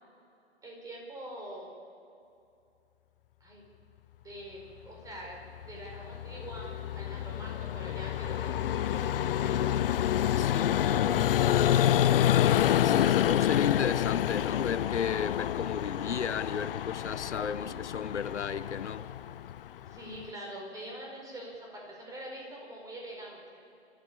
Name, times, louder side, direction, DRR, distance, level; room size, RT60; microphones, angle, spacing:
voice 1, 0.6-1.7 3.4-3.6 4.2-9.6 10.9-12.0 17.3-17.9 19.9-23.6, right 1 dB, 10° right, 4.9 m, -44 dB
Vehicle, 5.6-20.3, left 11 dB, 55° left, 0.7 m, -28 dB
voice 2, 10.3-11.2 12.8-19.1, left 7 dB, 90° left, 0.9 m, -33 dB
29.5 x 13.5 x 8.5 m
hypercardioid pair, 135°, 34 cm